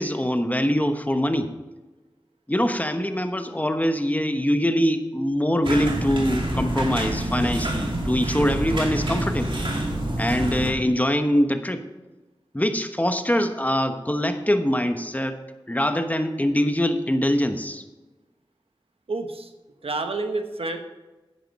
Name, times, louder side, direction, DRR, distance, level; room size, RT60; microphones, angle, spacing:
voice 1, 0.0-1.5 2.5-9.6 10.2-11.8 12.5-15.4 15.7-17.8, equal, 15° left, 7 dB, 1.1 m, -23 dB
sound 1, 5.6-10.7, right 1 dB, 60° right, 2.5 m, -27 dB
voice 2, 19.1-19.5 19.8-20.8, right 3 dB, 85° right, 6 dB, 1.1 m, -28 dB
11.0 x 9.1 x 4.2 m, 1.2 s
wide cardioid pair, 40°, 10 cm